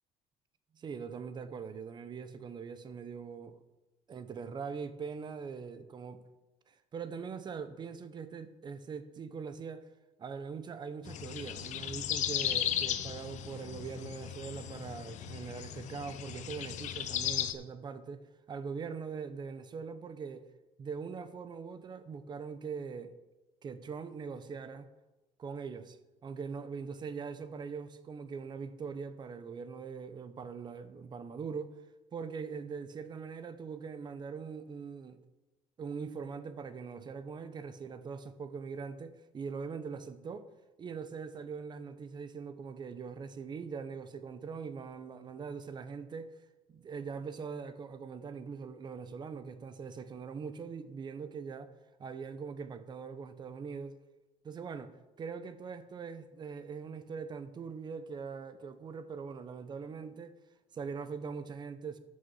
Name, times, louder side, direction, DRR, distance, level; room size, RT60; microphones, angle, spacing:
voice 1, 0.7-3.6 4.1-6.2 6.7-9.9 10.2-18.2 18.5-20.5 20.8-23.1 23.6-24.9 25.4-26.0 26.2-31.8 32.1-35.2 35.8-40.5 40.8-46.4 46.7-51.7 52.0-53.9 54.4-60.4 60.7-62.0, right 5 dB, 35° right, 0.8 m, -42 dB
sound 1, 11.1-17.5, left 11 dB, 65° left, 0.8 m, -36 dB
13.5 x 6.3 x 5.7 m
cardioid pair, 150°, 14 cm